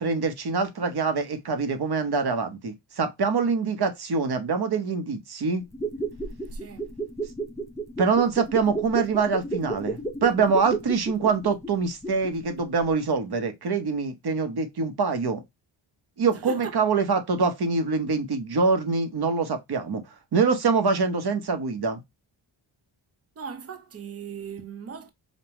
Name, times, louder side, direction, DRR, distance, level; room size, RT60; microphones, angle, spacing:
voice 1, 0.0-5.6 8.0-15.4 16.2-20.0 20.3-22.0, right 4 dB, 50° right, 0.9 m, -25 dB
sound 1, 5.6-12.5 12.8-12.9, right 3 dB, 5° left, 0.6 m, -32 dB
voice 2, 6.5-6.9 16.3-16.7 23.4-25.1, right 7 dB, 30° right, 0.7 m, -38 dB
5.3 x 2.2 x 2.9 m
wide cardioid pair, 155°, 48 cm